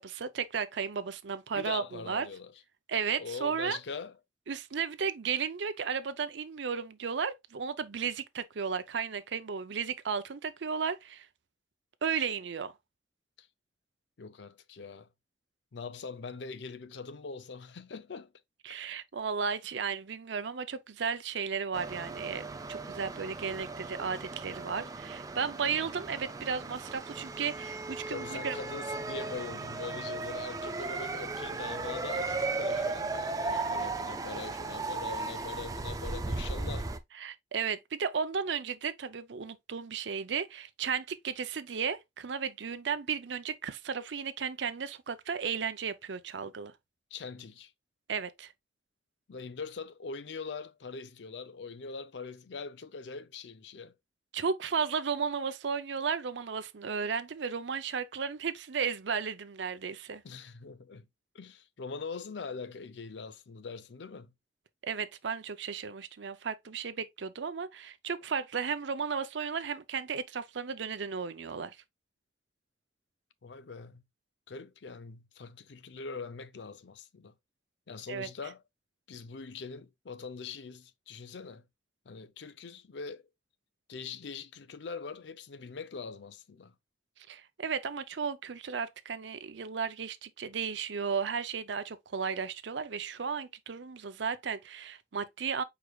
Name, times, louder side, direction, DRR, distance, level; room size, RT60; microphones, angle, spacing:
voice 1, 0.0-2.3 2.9-3.8 4.5-11.3 12.0-12.7 18.6-28.6 33.5-33.6 37.2-46.7 48.1-48.5 54.3-60.2 64.8-71.8 78.1-78.3 87.3-95.6, right 6 dB, 75° right, 0.6 m, -34 dB
voice 2, 1.5-2.5 3.2-4.2 13.4-13.5 14.2-15.1 15.7-18.3 28.1-36.9 47.1-47.7 49.3-53.9 60.2-61.1 61.3-64.3 73.4-74.0 74.5-77.3 77.9-78.6 79.1-81.6 82.1-83.3 83.9-86.7, left 5 dB, 70° left, 0.5 m, -42 dB
sound 1, 21.7-37.0, right 3 dB, 20° right, 0.4 m, -36 dB
4.9 x 4.7 x 2.3 m
head